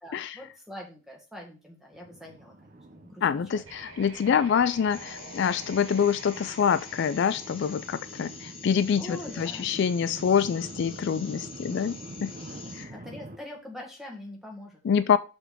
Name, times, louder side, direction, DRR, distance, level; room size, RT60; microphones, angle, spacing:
voice 1, 0.0-3.2 3.5-3.6 9.0-9.7 12.8-15.0, left 1 dB, ahead, -1 dB, 1.7 m, -44 dB
sound 1, 1.9-13.4, right 1 dB, 40° right, 0.8 m, -46 dB
voice 2, 3.2-12.0 12.2-12.3 12.8-12.9 14.8-15.2, left 7 dB, 55° left, 14 dB, 0.3 m, -26 dB
sound 2, 3.6-8.5, right 2 dB, 75° right, 2.1 m, -47 dB
sound 3, 4.9-12.8, left 5 dB, 25° left, 1.1 m, -46 dB
5.6 x 4.0 x 6.0 m, 0.33 s
head